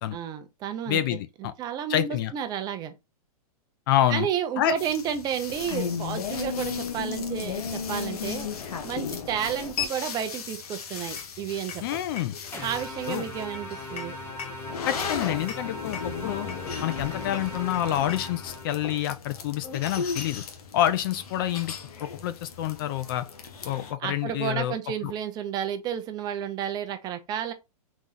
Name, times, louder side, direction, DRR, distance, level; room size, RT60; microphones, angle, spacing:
voice 1, 0.1-1.2 1.6-2.9 4.1-8.5 8.8-11.8 12.6-14.1 24.0-27.5, right 9 dB, 20° right, 0.5 m, -31 dB
voice 2, 0.9-1.5 1.9-2.3 3.9-4.3 4.6-4.7 11.8-12.3 13.1-13.2 14.9-16.5 16.8-20.4 20.7-21.7 22.0-23.3 23.6-24.8 25.0-25.1, left 12 dB, 35° left, 0.4 m, -27 dB
sound 1, 4.8-23.9, left 6 dB, 75° left, 1.2 m, -35 dB
sound 2, 12.5-19.0, left 2 dB, 10° left, 0.9 m, -39 dB
4.0 x 3.0 x 3.8 m
hypercardioid pair, 150°, 19 cm